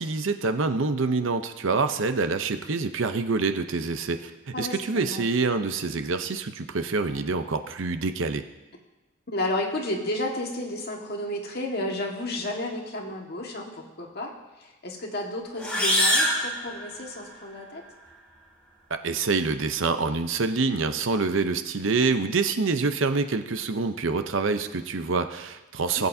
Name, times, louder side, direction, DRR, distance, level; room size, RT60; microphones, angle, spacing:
voice 1, 0.0-4.3 4.6-8.4 18.9-26.1, right 4 dB, 70° right, 8 dB, 0.7 m, -26 dB
voice 2, 4.5-5.3 9.3-14.3 14.6-17.8 26.0-26.1, left 1 dB, 55° left, 0 dB, 1.7 m, -32 dB
sound 1, 15.6-17.4, equal, 5° left, 3.1 m, -25 dB
20.0 x 8.2 x 2.7 m, 1.0 s
head